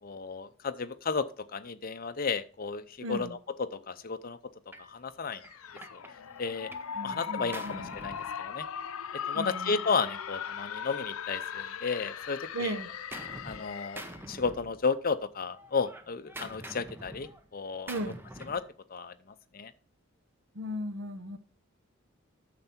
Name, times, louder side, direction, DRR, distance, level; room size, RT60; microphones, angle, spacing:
voice 1, 0.0-1.3 1.5-4.4 4.8-5.4 5.9-6.0 6.4-6.7 7.0-8.7 9.3-12.8 13.4-17.9 18.5-18.6 18.9-19.1 19.5-19.7, left 5 dB, 45° left, 0.6 m, -33 dB
voice 2, 3.0-3.4 6.9-7.9 9.3-9.8 12.5-12.9 17.9-18.2 20.5-21.4, equal, 65° right, 0.9 m, -36 dB
Gunshot gunfire, 4.7-4.9 5.4-7.0 7.2-8.9 9.9-11.7 12.1-13.6 13.9-15.2 15.5-18.7, right 1 dB, 10° right, 0.7 m, -47 dB
sound 1, 5.4-14.2, left 8 dB, 90° left, 0.6 m, -39 dB
9.2 x 6.8 x 4.4 m
head